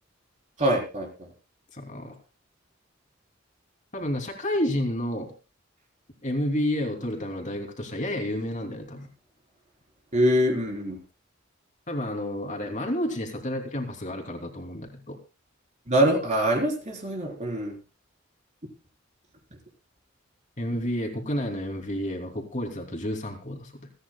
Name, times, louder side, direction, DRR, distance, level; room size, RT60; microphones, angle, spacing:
voice 1, 0.6-1.1 10.1-11.0 15.9-17.8, right 1 dB, 35° right, 1 dB, 4.3 m, -24 dB
voice 2, 1.7-2.2 3.9-5.3 6.2-9.1 11.9-15.2 20.6-23.9, left 1 dB, 40° left, 3 dB, 2.9 m, -30 dB
29.0 x 10.0 x 2.3 m, 0.32 s
head